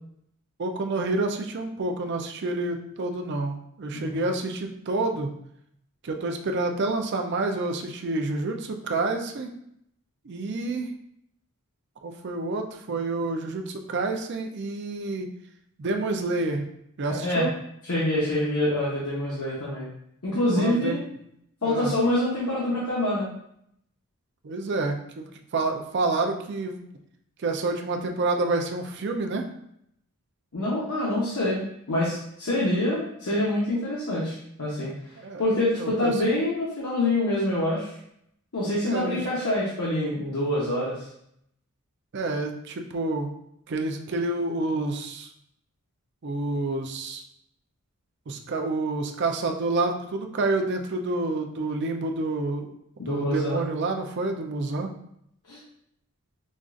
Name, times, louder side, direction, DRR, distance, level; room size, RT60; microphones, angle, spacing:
voice 1, 0.6-5.3 6.0-9.5 10.2-10.9 12.0-15.3 15.8-16.6 17.0-17.5 20.6-21.0 21.6-21.9 24.4-26.8 27.4-29.5 35.2-35.4 35.8-36.1 38.9-39.3 42.1-43.3 43.7-45.3 46.2-47.2 48.3-52.7 53.1-54.9, right 2 dB, 50° right, 4 dB, 0.4 m, -28 dB
voice 2, 17.9-19.8 20.2-21.0 21.6-23.3 30.5-31.6 31.9-34.9 35.4-37.9 38.5-41.1 53.0-53.6 55.5-55.6, left 1 dB, 80° left, -7 dB, 0.9 m, -26 dB
5.1 x 2.4 x 2.5 m, 0.73 s
head